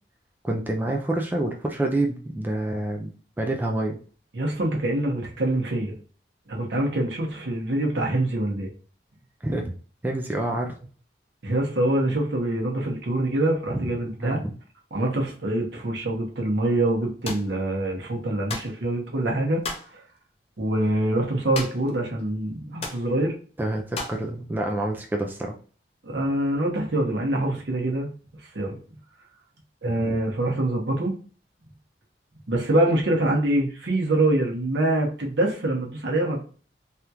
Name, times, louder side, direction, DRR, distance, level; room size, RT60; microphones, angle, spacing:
voice 1, 0.4-3.1 3.4-4.0 9.4-9.8 10.0-10.8 13.7-13.9 14.2-14.5 23.6-25.6, right 1 dB, 10° right, 1 dB, 0.3 m, -27 dB
voice 2, 4.3-5.9 6.5-8.7 11.4-14.4 14.9-19.6 20.6-23.3 26.0-28.1 28.5-28.8 29.8-31.1 32.5-36.5, right 1 dB, 80° right, 0 dB, 0.9 m, -25 dB
sound 1, 17.2-17.5 18.5-18.8 19.6-19.9 21.5-21.9 22.2-22.3 22.8-23.1 23.9-24.2, left 3 dB, 35° left, 0.6 m, -33 dB
3.4 x 2.3 x 2.8 m, 0.41 s
head